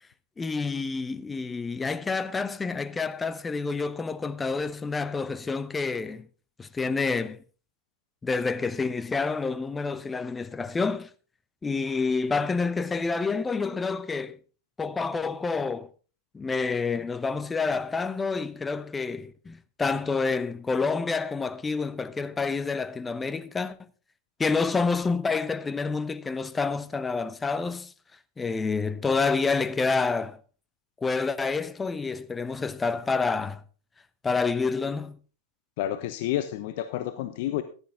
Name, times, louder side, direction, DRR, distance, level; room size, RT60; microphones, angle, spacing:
voice 1, 0.4-6.3 6.6-7.4 8.2-11.1 11.6-14.4 14.8-15.9 16.3-23.8 24.4-27.9 28.4-30.4 31.0-33.6 34.2-35.2, left 4 dB, 15° left, 0.7 m, -28 dB
voice 2, 35.8-37.6, left 13 dB, 50° left, 0.9 m, -30 dB
14.5 x 11.0 x 3.7 m
figure-of-eight pair, 90°, 0 cm